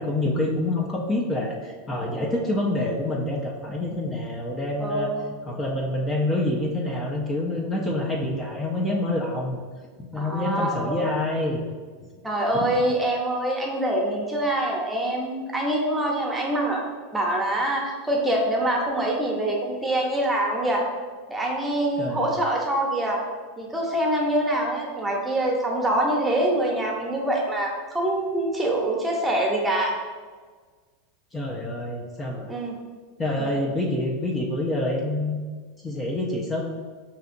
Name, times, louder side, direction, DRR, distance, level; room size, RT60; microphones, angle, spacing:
voice 1, 0.0-5.1 5.5-9.6 10.0-11.6 12.0-12.1 22.0-22.4 31.3-32.5 33.2-35.4 35.8-36.6, left 1 dB, 20° left, -2 dB, 0.5 m, -27 dB
voice 2, 4.8-5.2 10.2-11.1 12.2-16.8 17.1-20.9 21.3-23.2 23.6-29.9 32.5-32.7 33.4-33.5, right 1 dB, 10° right, -1 dB, 0.8 m, -25 dB
4.9 x 2.8 x 2.5 m, 1.5 s
hypercardioid pair, 110°, 0 cm